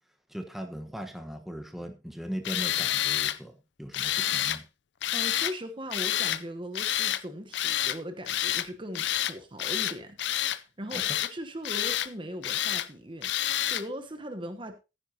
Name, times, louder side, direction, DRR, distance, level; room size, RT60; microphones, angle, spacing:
voice 1, 0.3-4.6 10.9-11.0, equal, ahead, 1.2 m, -39 dB
Tools, 2.4-3.4 3.9-4.6 5.0-5.5 5.9-6.4 6.7-7.2 7.5-8.0 8.3-8.7 9.0-9.3 9.6-10.6 10.9-11.3 11.6-12.1 12.4-12.9 13.2-13.8, left 12 dB, 65° left, 0.5 m, -28 dB
voice 2, 5.1-10.2 10.5-14.7, equal, 25° right, 1.1 m, -39 dB
14.5 x 10.0 x 2.8 m
head